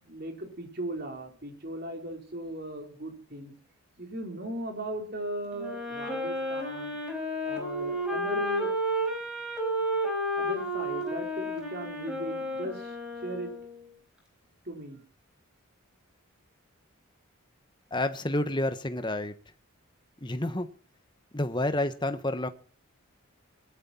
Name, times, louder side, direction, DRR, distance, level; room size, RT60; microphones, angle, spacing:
voice 1, 0.0-3.5 4.0-7.0 7.4-8.7 10.4-13.0 13.2-13.5 14.6-15.0, right 1 dB, 45° right, 4.2 m, -37 dB
Wind instrument woodwind instrument, 5.5-13.9, equal, 5° right, 5.2 m, -32 dB
voice 2, 17.9-19.3 20.2-20.7 21.3-22.5, left 1 dB, 20° left, 1.2 m, -29 dB
20.5 x 12.0 x 4.4 m
head